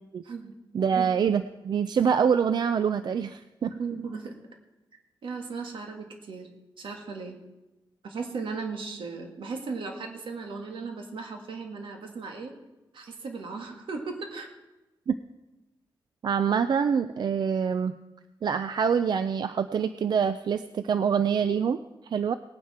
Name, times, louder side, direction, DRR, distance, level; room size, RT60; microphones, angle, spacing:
voice 1, 0.7-3.7 15.1-15.2 16.2-17.9 18.4-22.3, right 7 dB, 60° right, 11 dB, 0.4 m, -25 dB
voice 2, 3.7-4.3 5.2-6.5 6.8-7.4 8.0-12.5 12.9-14.5, right 4 dB, 85° right, 3 dB, 1.9 m, -36 dB
19.0 x 9.5 x 4.3 m, 1.0 s
wide cardioid pair, 120°, 8 cm